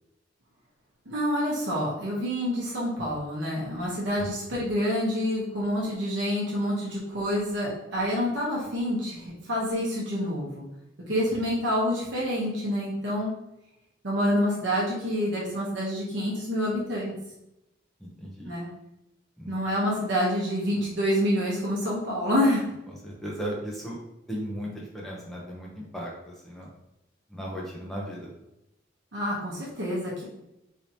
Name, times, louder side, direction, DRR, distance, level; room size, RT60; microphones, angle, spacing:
voice 1, 1.1-10.7 11.1-13.3 14.0-17.1 18.4-18.7 19.5-22.7 29.1-30.2, equal, 70° right, -5 dB, 0.9 m, -27 dB
voice 2, 18.0-18.5 19.4-19.5 22.9-24.0 24.3-26.7 27.3-28.3, equal, ahead, -4 dB, 0.6 m, -36 dB
3.3 x 2.7 x 2.7 m, 0.87 s
head